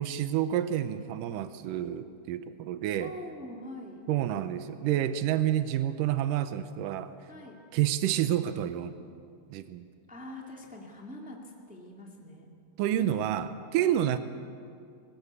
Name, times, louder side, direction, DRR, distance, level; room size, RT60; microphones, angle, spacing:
voice 1, 0.0-3.1 4.1-7.1 7.7-8.9 9.5-9.9 12.8-14.2, right 11 dB, 85° right, 11 dB, 1.9 m, -29 dB
voice 2, 3.0-4.1 7.3-7.6 10.1-12.5, left 1 dB, 10° right, -1 dB, 0.5 m, -44 dB
19.5 x 18.5 x 8.2 m, 2.3 s
omnidirectional pair, 4.7 m